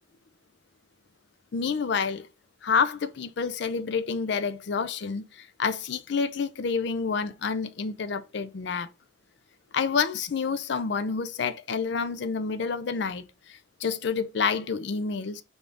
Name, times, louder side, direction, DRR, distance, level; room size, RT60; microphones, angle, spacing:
voice 1, 1.5-2.3 2.6-8.9 9.7-15.4, left 5 dB, 55° left, 0.4 m, -28 dB
3.8 x 3.6 x 3.4 m
head